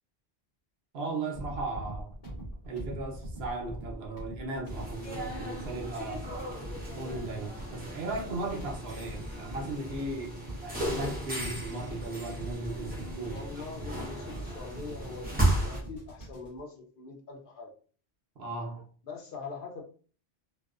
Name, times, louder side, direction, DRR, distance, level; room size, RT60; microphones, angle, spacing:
voice 1, 0.9-2.1 2.7-6.3 6.9-10.4 10.6-13.4 18.4-18.9, right 2 dB, 80° right, 0.9 m, -36 dB
sound 1, 1.3-16.6, right 1 dB, 40° left, 0.9 m, -43 dB
sound 2, 4.7-15.8, right 1 dB, 10° right, 0.6 m, -35 dB
voice 2, 13.3-17.7 19.0-19.8, left 4 dB, 60° left, 0.7 m, -43 dB
2.5 x 2.1 x 2.4 m
omnidirectional pair, 1.0 m